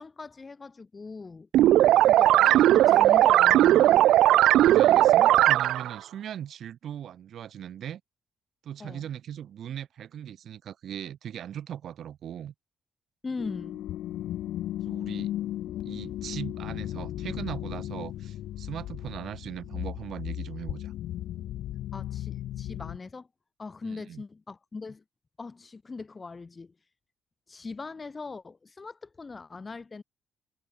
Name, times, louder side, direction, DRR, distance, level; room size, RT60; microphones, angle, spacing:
voice 1, 0.0-1.5 2.0-4.0 8.8-9.1 13.2-13.8 21.9-23.3 23.6-25.0 25.4-26.7 27.5-30.0, left 4 dB, 30° left, 4.8 m, -40 dB
sound 1, 1.5-5.9, right 13 dB, 85° right, 0.7 m, -18 dB
voice 2, 4.6-8.0 8.6-12.5 14.8-15.3 15.8-20.9 23.8-24.2, right 10 dB, 65° right, 3.2 m, -39 dB
sound 2, 13.4-23.0, left 13 dB, 80° left, 2.0 m, -35 dB
cardioid pair, 90°, 0 cm